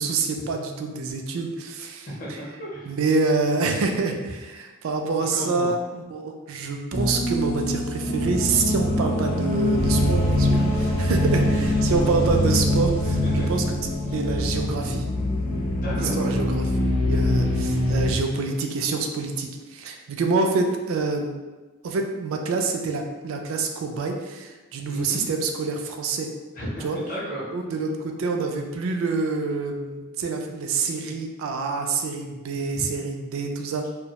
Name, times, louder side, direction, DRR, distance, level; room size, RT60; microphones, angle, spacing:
voice 1, 0.0-2.4 2.9-13.6 14.1-15.0 16.0-16.7 17.0-21.4 21.8-26.3 26.8-27.0 27.5-33.9, right 4 dB, 60° right, 4 dB, 0.3 m, -27 dB
voice 2, 2.2-2.9 5.3-5.7 11.5-11.8 13.0-13.5 14.0-14.2 15.8-16.2 24.9-25.2 26.6-27.5 32.7-32.8, equal, 40° left, -7 dB, 0.6 m, -33 dB
sound 1, 6.9-18.1, left 1 dB, 75° left, 0.7 m, -23 dB
sound 2, 9.8-14.9, right 1 dB, 85° right, 0.7 m, -33 dB
2.2 x 2.1 x 2.8 m, 1.2 s
head